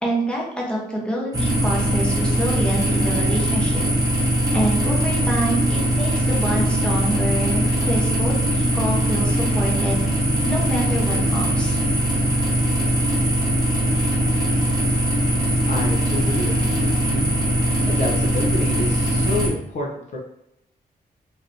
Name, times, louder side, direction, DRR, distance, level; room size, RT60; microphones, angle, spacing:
voice 1, 0.0-3.9 4.5-10.0 10.4-11.8, right 1 dB, 5° left, -3 dB, 0.7 m, -26 dB
sound 1, 1.3-19.5, right 1 dB, 20° right, 0.9 m, -21 dB
voice 2, 15.7-17.3 17.9-20.2, left 2 dB, 45° left, -2 dB, 0.5 m, -29 dB
3.3 x 2.5 x 2.5 m, 0.80 s
wide cardioid pair, 165°, 17 cm